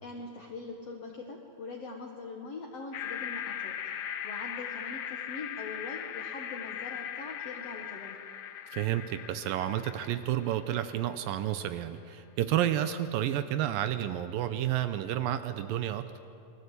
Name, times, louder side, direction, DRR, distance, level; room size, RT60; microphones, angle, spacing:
voice 1, 0.0-3.8 4.2-8.2, left 3 dB, 50° left, 0 dB, 2.4 m, -42 dB
sound 1, 2.9-11.1, left 9 dB, 85° left, 1.3 m, -39 dB
voice 2, 8.7-16.1, right 12 dB, 80° right, 10 dB, 2.5 m, -30 dB
28.5 x 20.0 x 8.4 m, 2.6 s
omnidirectional pair, 4.2 m